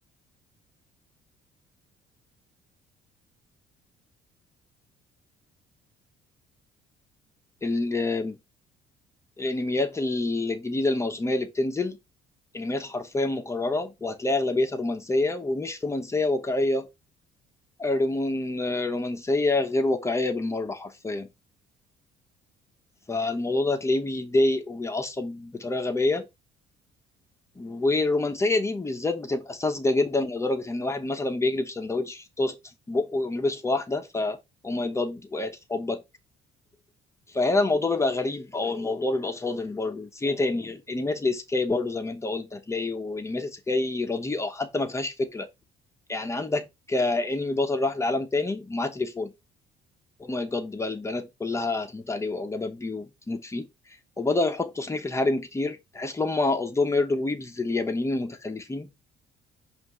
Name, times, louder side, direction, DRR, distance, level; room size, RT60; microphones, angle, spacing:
voice 1, 7.6-8.4 9.4-12.0 12.5-16.9 17.8-21.3 23.1-26.3 27.6-32.6 32.9-34.4 34.6-36.0 37.3-45.5 46.1-49.3 50.2-53.7 54.2-58.9, left 2 dB, 15° left, 0.9 m, -27 dB
7.5 x 2.7 x 4.7 m
cardioid pair, 110°, 17 cm